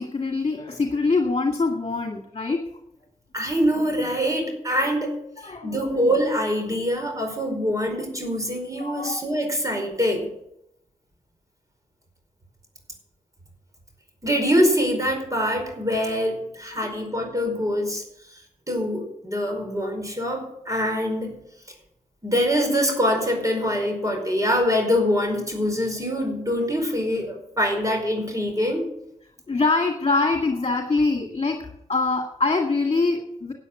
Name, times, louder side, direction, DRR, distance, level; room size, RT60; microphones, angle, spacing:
voice 1, 0.0-2.6 5.4-5.8 8.8-9.1 16.7-16.9 29.5-33.5, left 3 dB, 45° left, 3 dB, 2.0 m, -24 dB
voice 2, 3.3-5.1 5.6-10.3 14.2-18.0 18.7-21.4 22.2-28.9, equal, 25° right, 2 dB, 4.8 m, -24 dB
12.5 x 8.8 x 7.9 m, 0.79 s
cardioid pair, 55°, 14 cm